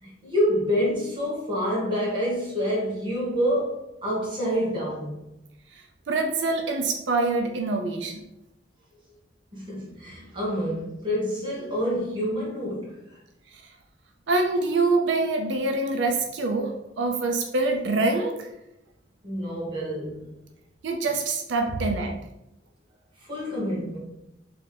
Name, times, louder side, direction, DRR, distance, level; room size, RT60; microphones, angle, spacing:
voice 1, 0.0-5.2 9.5-13.0 19.2-20.2 21.7-21.8 23.2-24.0, equal, 25° right, 1.5 m, -27 dB
voice 2, 6.1-8.2 14.3-18.5 20.8-22.1, right 3 dB, 85° right, 0.5 m, -25 dB
3.9 x 3.3 x 3.3 m
head